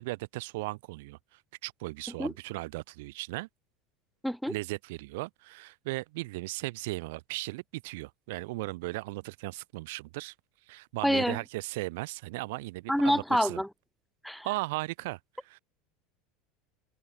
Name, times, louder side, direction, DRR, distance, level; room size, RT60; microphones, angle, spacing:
voice 1, 0.0-3.5 4.5-10.3 10.7-13.6 14.4-15.6, right 22 dB, 65° right, 0.7 m, -37 dB
voice 2, 4.2-4.5 11.0-11.4 12.9-13.7 14.2-14.5, equal, ahead, 0.4 m, -27 dB
hypercardioid pair, 80°, 0 cm